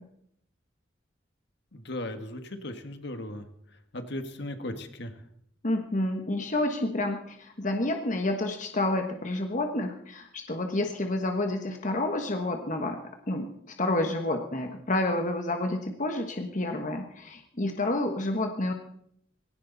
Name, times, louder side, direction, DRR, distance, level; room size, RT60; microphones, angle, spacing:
voice 1, 1.7-3.4 3.9-5.1, left 1 dB, 60° left, 7 dB, 1.7 m, -37 dB
voice 2, 5.6-13.5 13.8-18.7, left 2 dB, 40° left, 4 dB, 1.4 m, -29 dB
19.0 x 17.5 x 4.1 m, 0.69 s
head